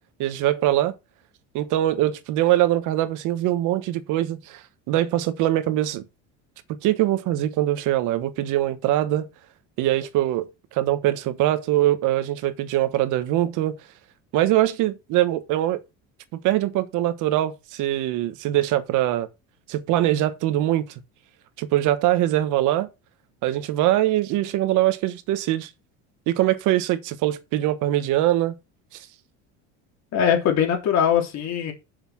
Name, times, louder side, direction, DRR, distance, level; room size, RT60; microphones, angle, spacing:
voice 1, 0.2-0.9 1.5-6.0 6.8-9.3 9.8-13.8 14.3-15.8 16.4-19.3 19.7-20.8 21.6-22.9 23.4-25.7 26.3-28.5, right 14 dB, 60° right, 1.2 m, -22 dB
voice 2, 30.1-31.7, left 8 dB, 50° left, 3.4 m, -21 dB
7.0 x 5.7 x 5.9 m
supercardioid pair, 120°, 34 cm